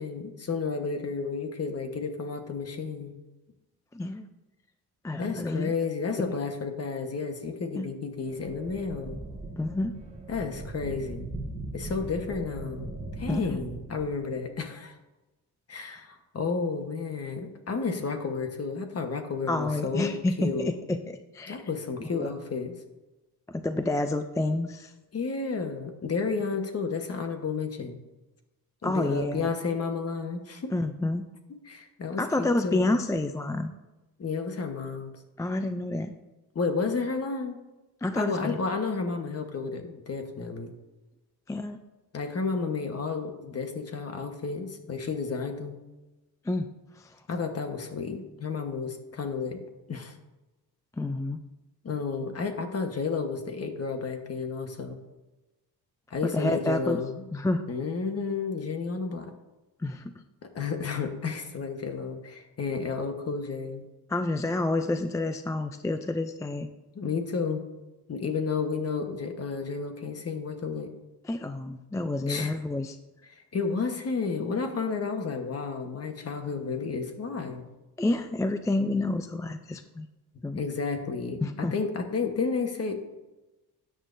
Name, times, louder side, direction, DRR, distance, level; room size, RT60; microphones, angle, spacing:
voice 1, 0.0-3.1 5.2-9.2 10.3-11.3 11.7-14.9 15.7-20.7 21.5-22.7 25.1-28.0 28.8-30.7 31.6-32.9 34.2-35.1 36.5-37.6 38.1-40.7 42.1-45.8 47.3-49.6 49.9-50.1 51.8-55.0 56.1-57.3 57.7-59.3 60.4-63.8 66.9-67.6 68.1-70.9 72.3-72.5 73.3-77.6 80.5-83.0, left 4 dB, 40° left, 6 dB, 1.2 m, -32 dB
voice 2, 3.9-4.3 5.0-5.7 7.8-7.9 9.6-10.0 13.3-13.6 19.5-21.6 22.0-22.3 23.5-24.9 28.8-29.5 30.7-31.2 32.2-33.7 35.4-36.1 38.0-38.6 41.5-41.8 46.5-46.7 47.0-47.2 51.0-51.4 56.2-57.0 57.3-57.6 59.8-60.1 64.1-66.7 71.2-73.0 78.0-80.1 80.4-80.6 81.4-81.7, left 2 dB, 10° left, 8 dB, 0.3 m, -29 dB
sound 1, 8.2-14.4, right 2 dB, 15° right, 1.5 m, -39 dB
13.0 x 9.1 x 2.6 m, 1.1 s
cardioid pair, 125°, 39 cm